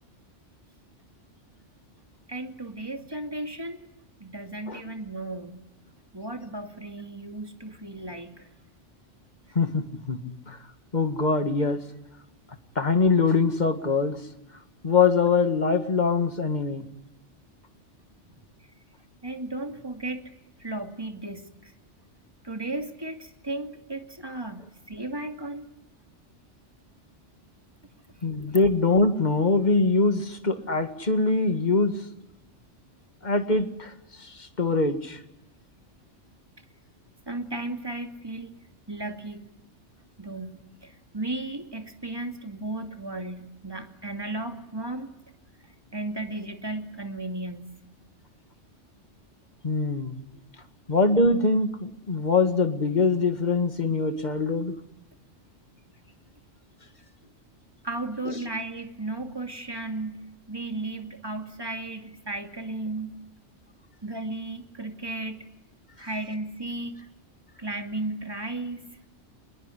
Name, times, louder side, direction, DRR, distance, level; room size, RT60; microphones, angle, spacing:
voice 1, 2.3-3.8 4.2-5.6 6.1-8.5 18.2-18.4 19.2-20.3 20.6-21.7 22.4-25.7 37.3-38.6 38.9-39.5 40.2-45.1 45.9-47.7 57.8-63.2 64.0-65.4 66.0-67.0 67.6-68.8, right 2 dB, 20° right, 5 dB, 2.5 m, -35 dB
voice 2, 9.6-10.6 10.9-11.8 12.8-14.2 14.8-16.9 28.2-32.0 33.2-33.9 34.2-35.2 49.6-50.2 50.9-54.8, left 3 dB, 40° left, 8 dB, 2.1 m, -23 dB
26.5 x 21.0 x 10.0 m, 0.87 s
omnidirectional pair, 1.2 m